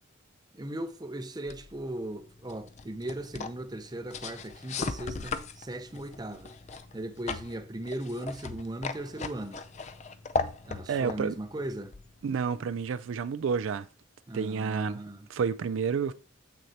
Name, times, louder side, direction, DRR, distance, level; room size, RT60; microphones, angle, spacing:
voice 1, 0.5-6.5 6.9-9.6 10.6-11.9 14.3-15.3, right 1 dB, 20° right, 0.6 m, -38 dB
sound 1, 1.5-12.6, left 4 dB, 35° left, 0.4 m, -38 dB
voice 2, 10.9-11.4 12.2-13.9 14.3-15.0 15.3-16.1, right 6 dB, 75° right, 0.4 m, -30 dB
7.8 x 6.1 x 2.8 m
head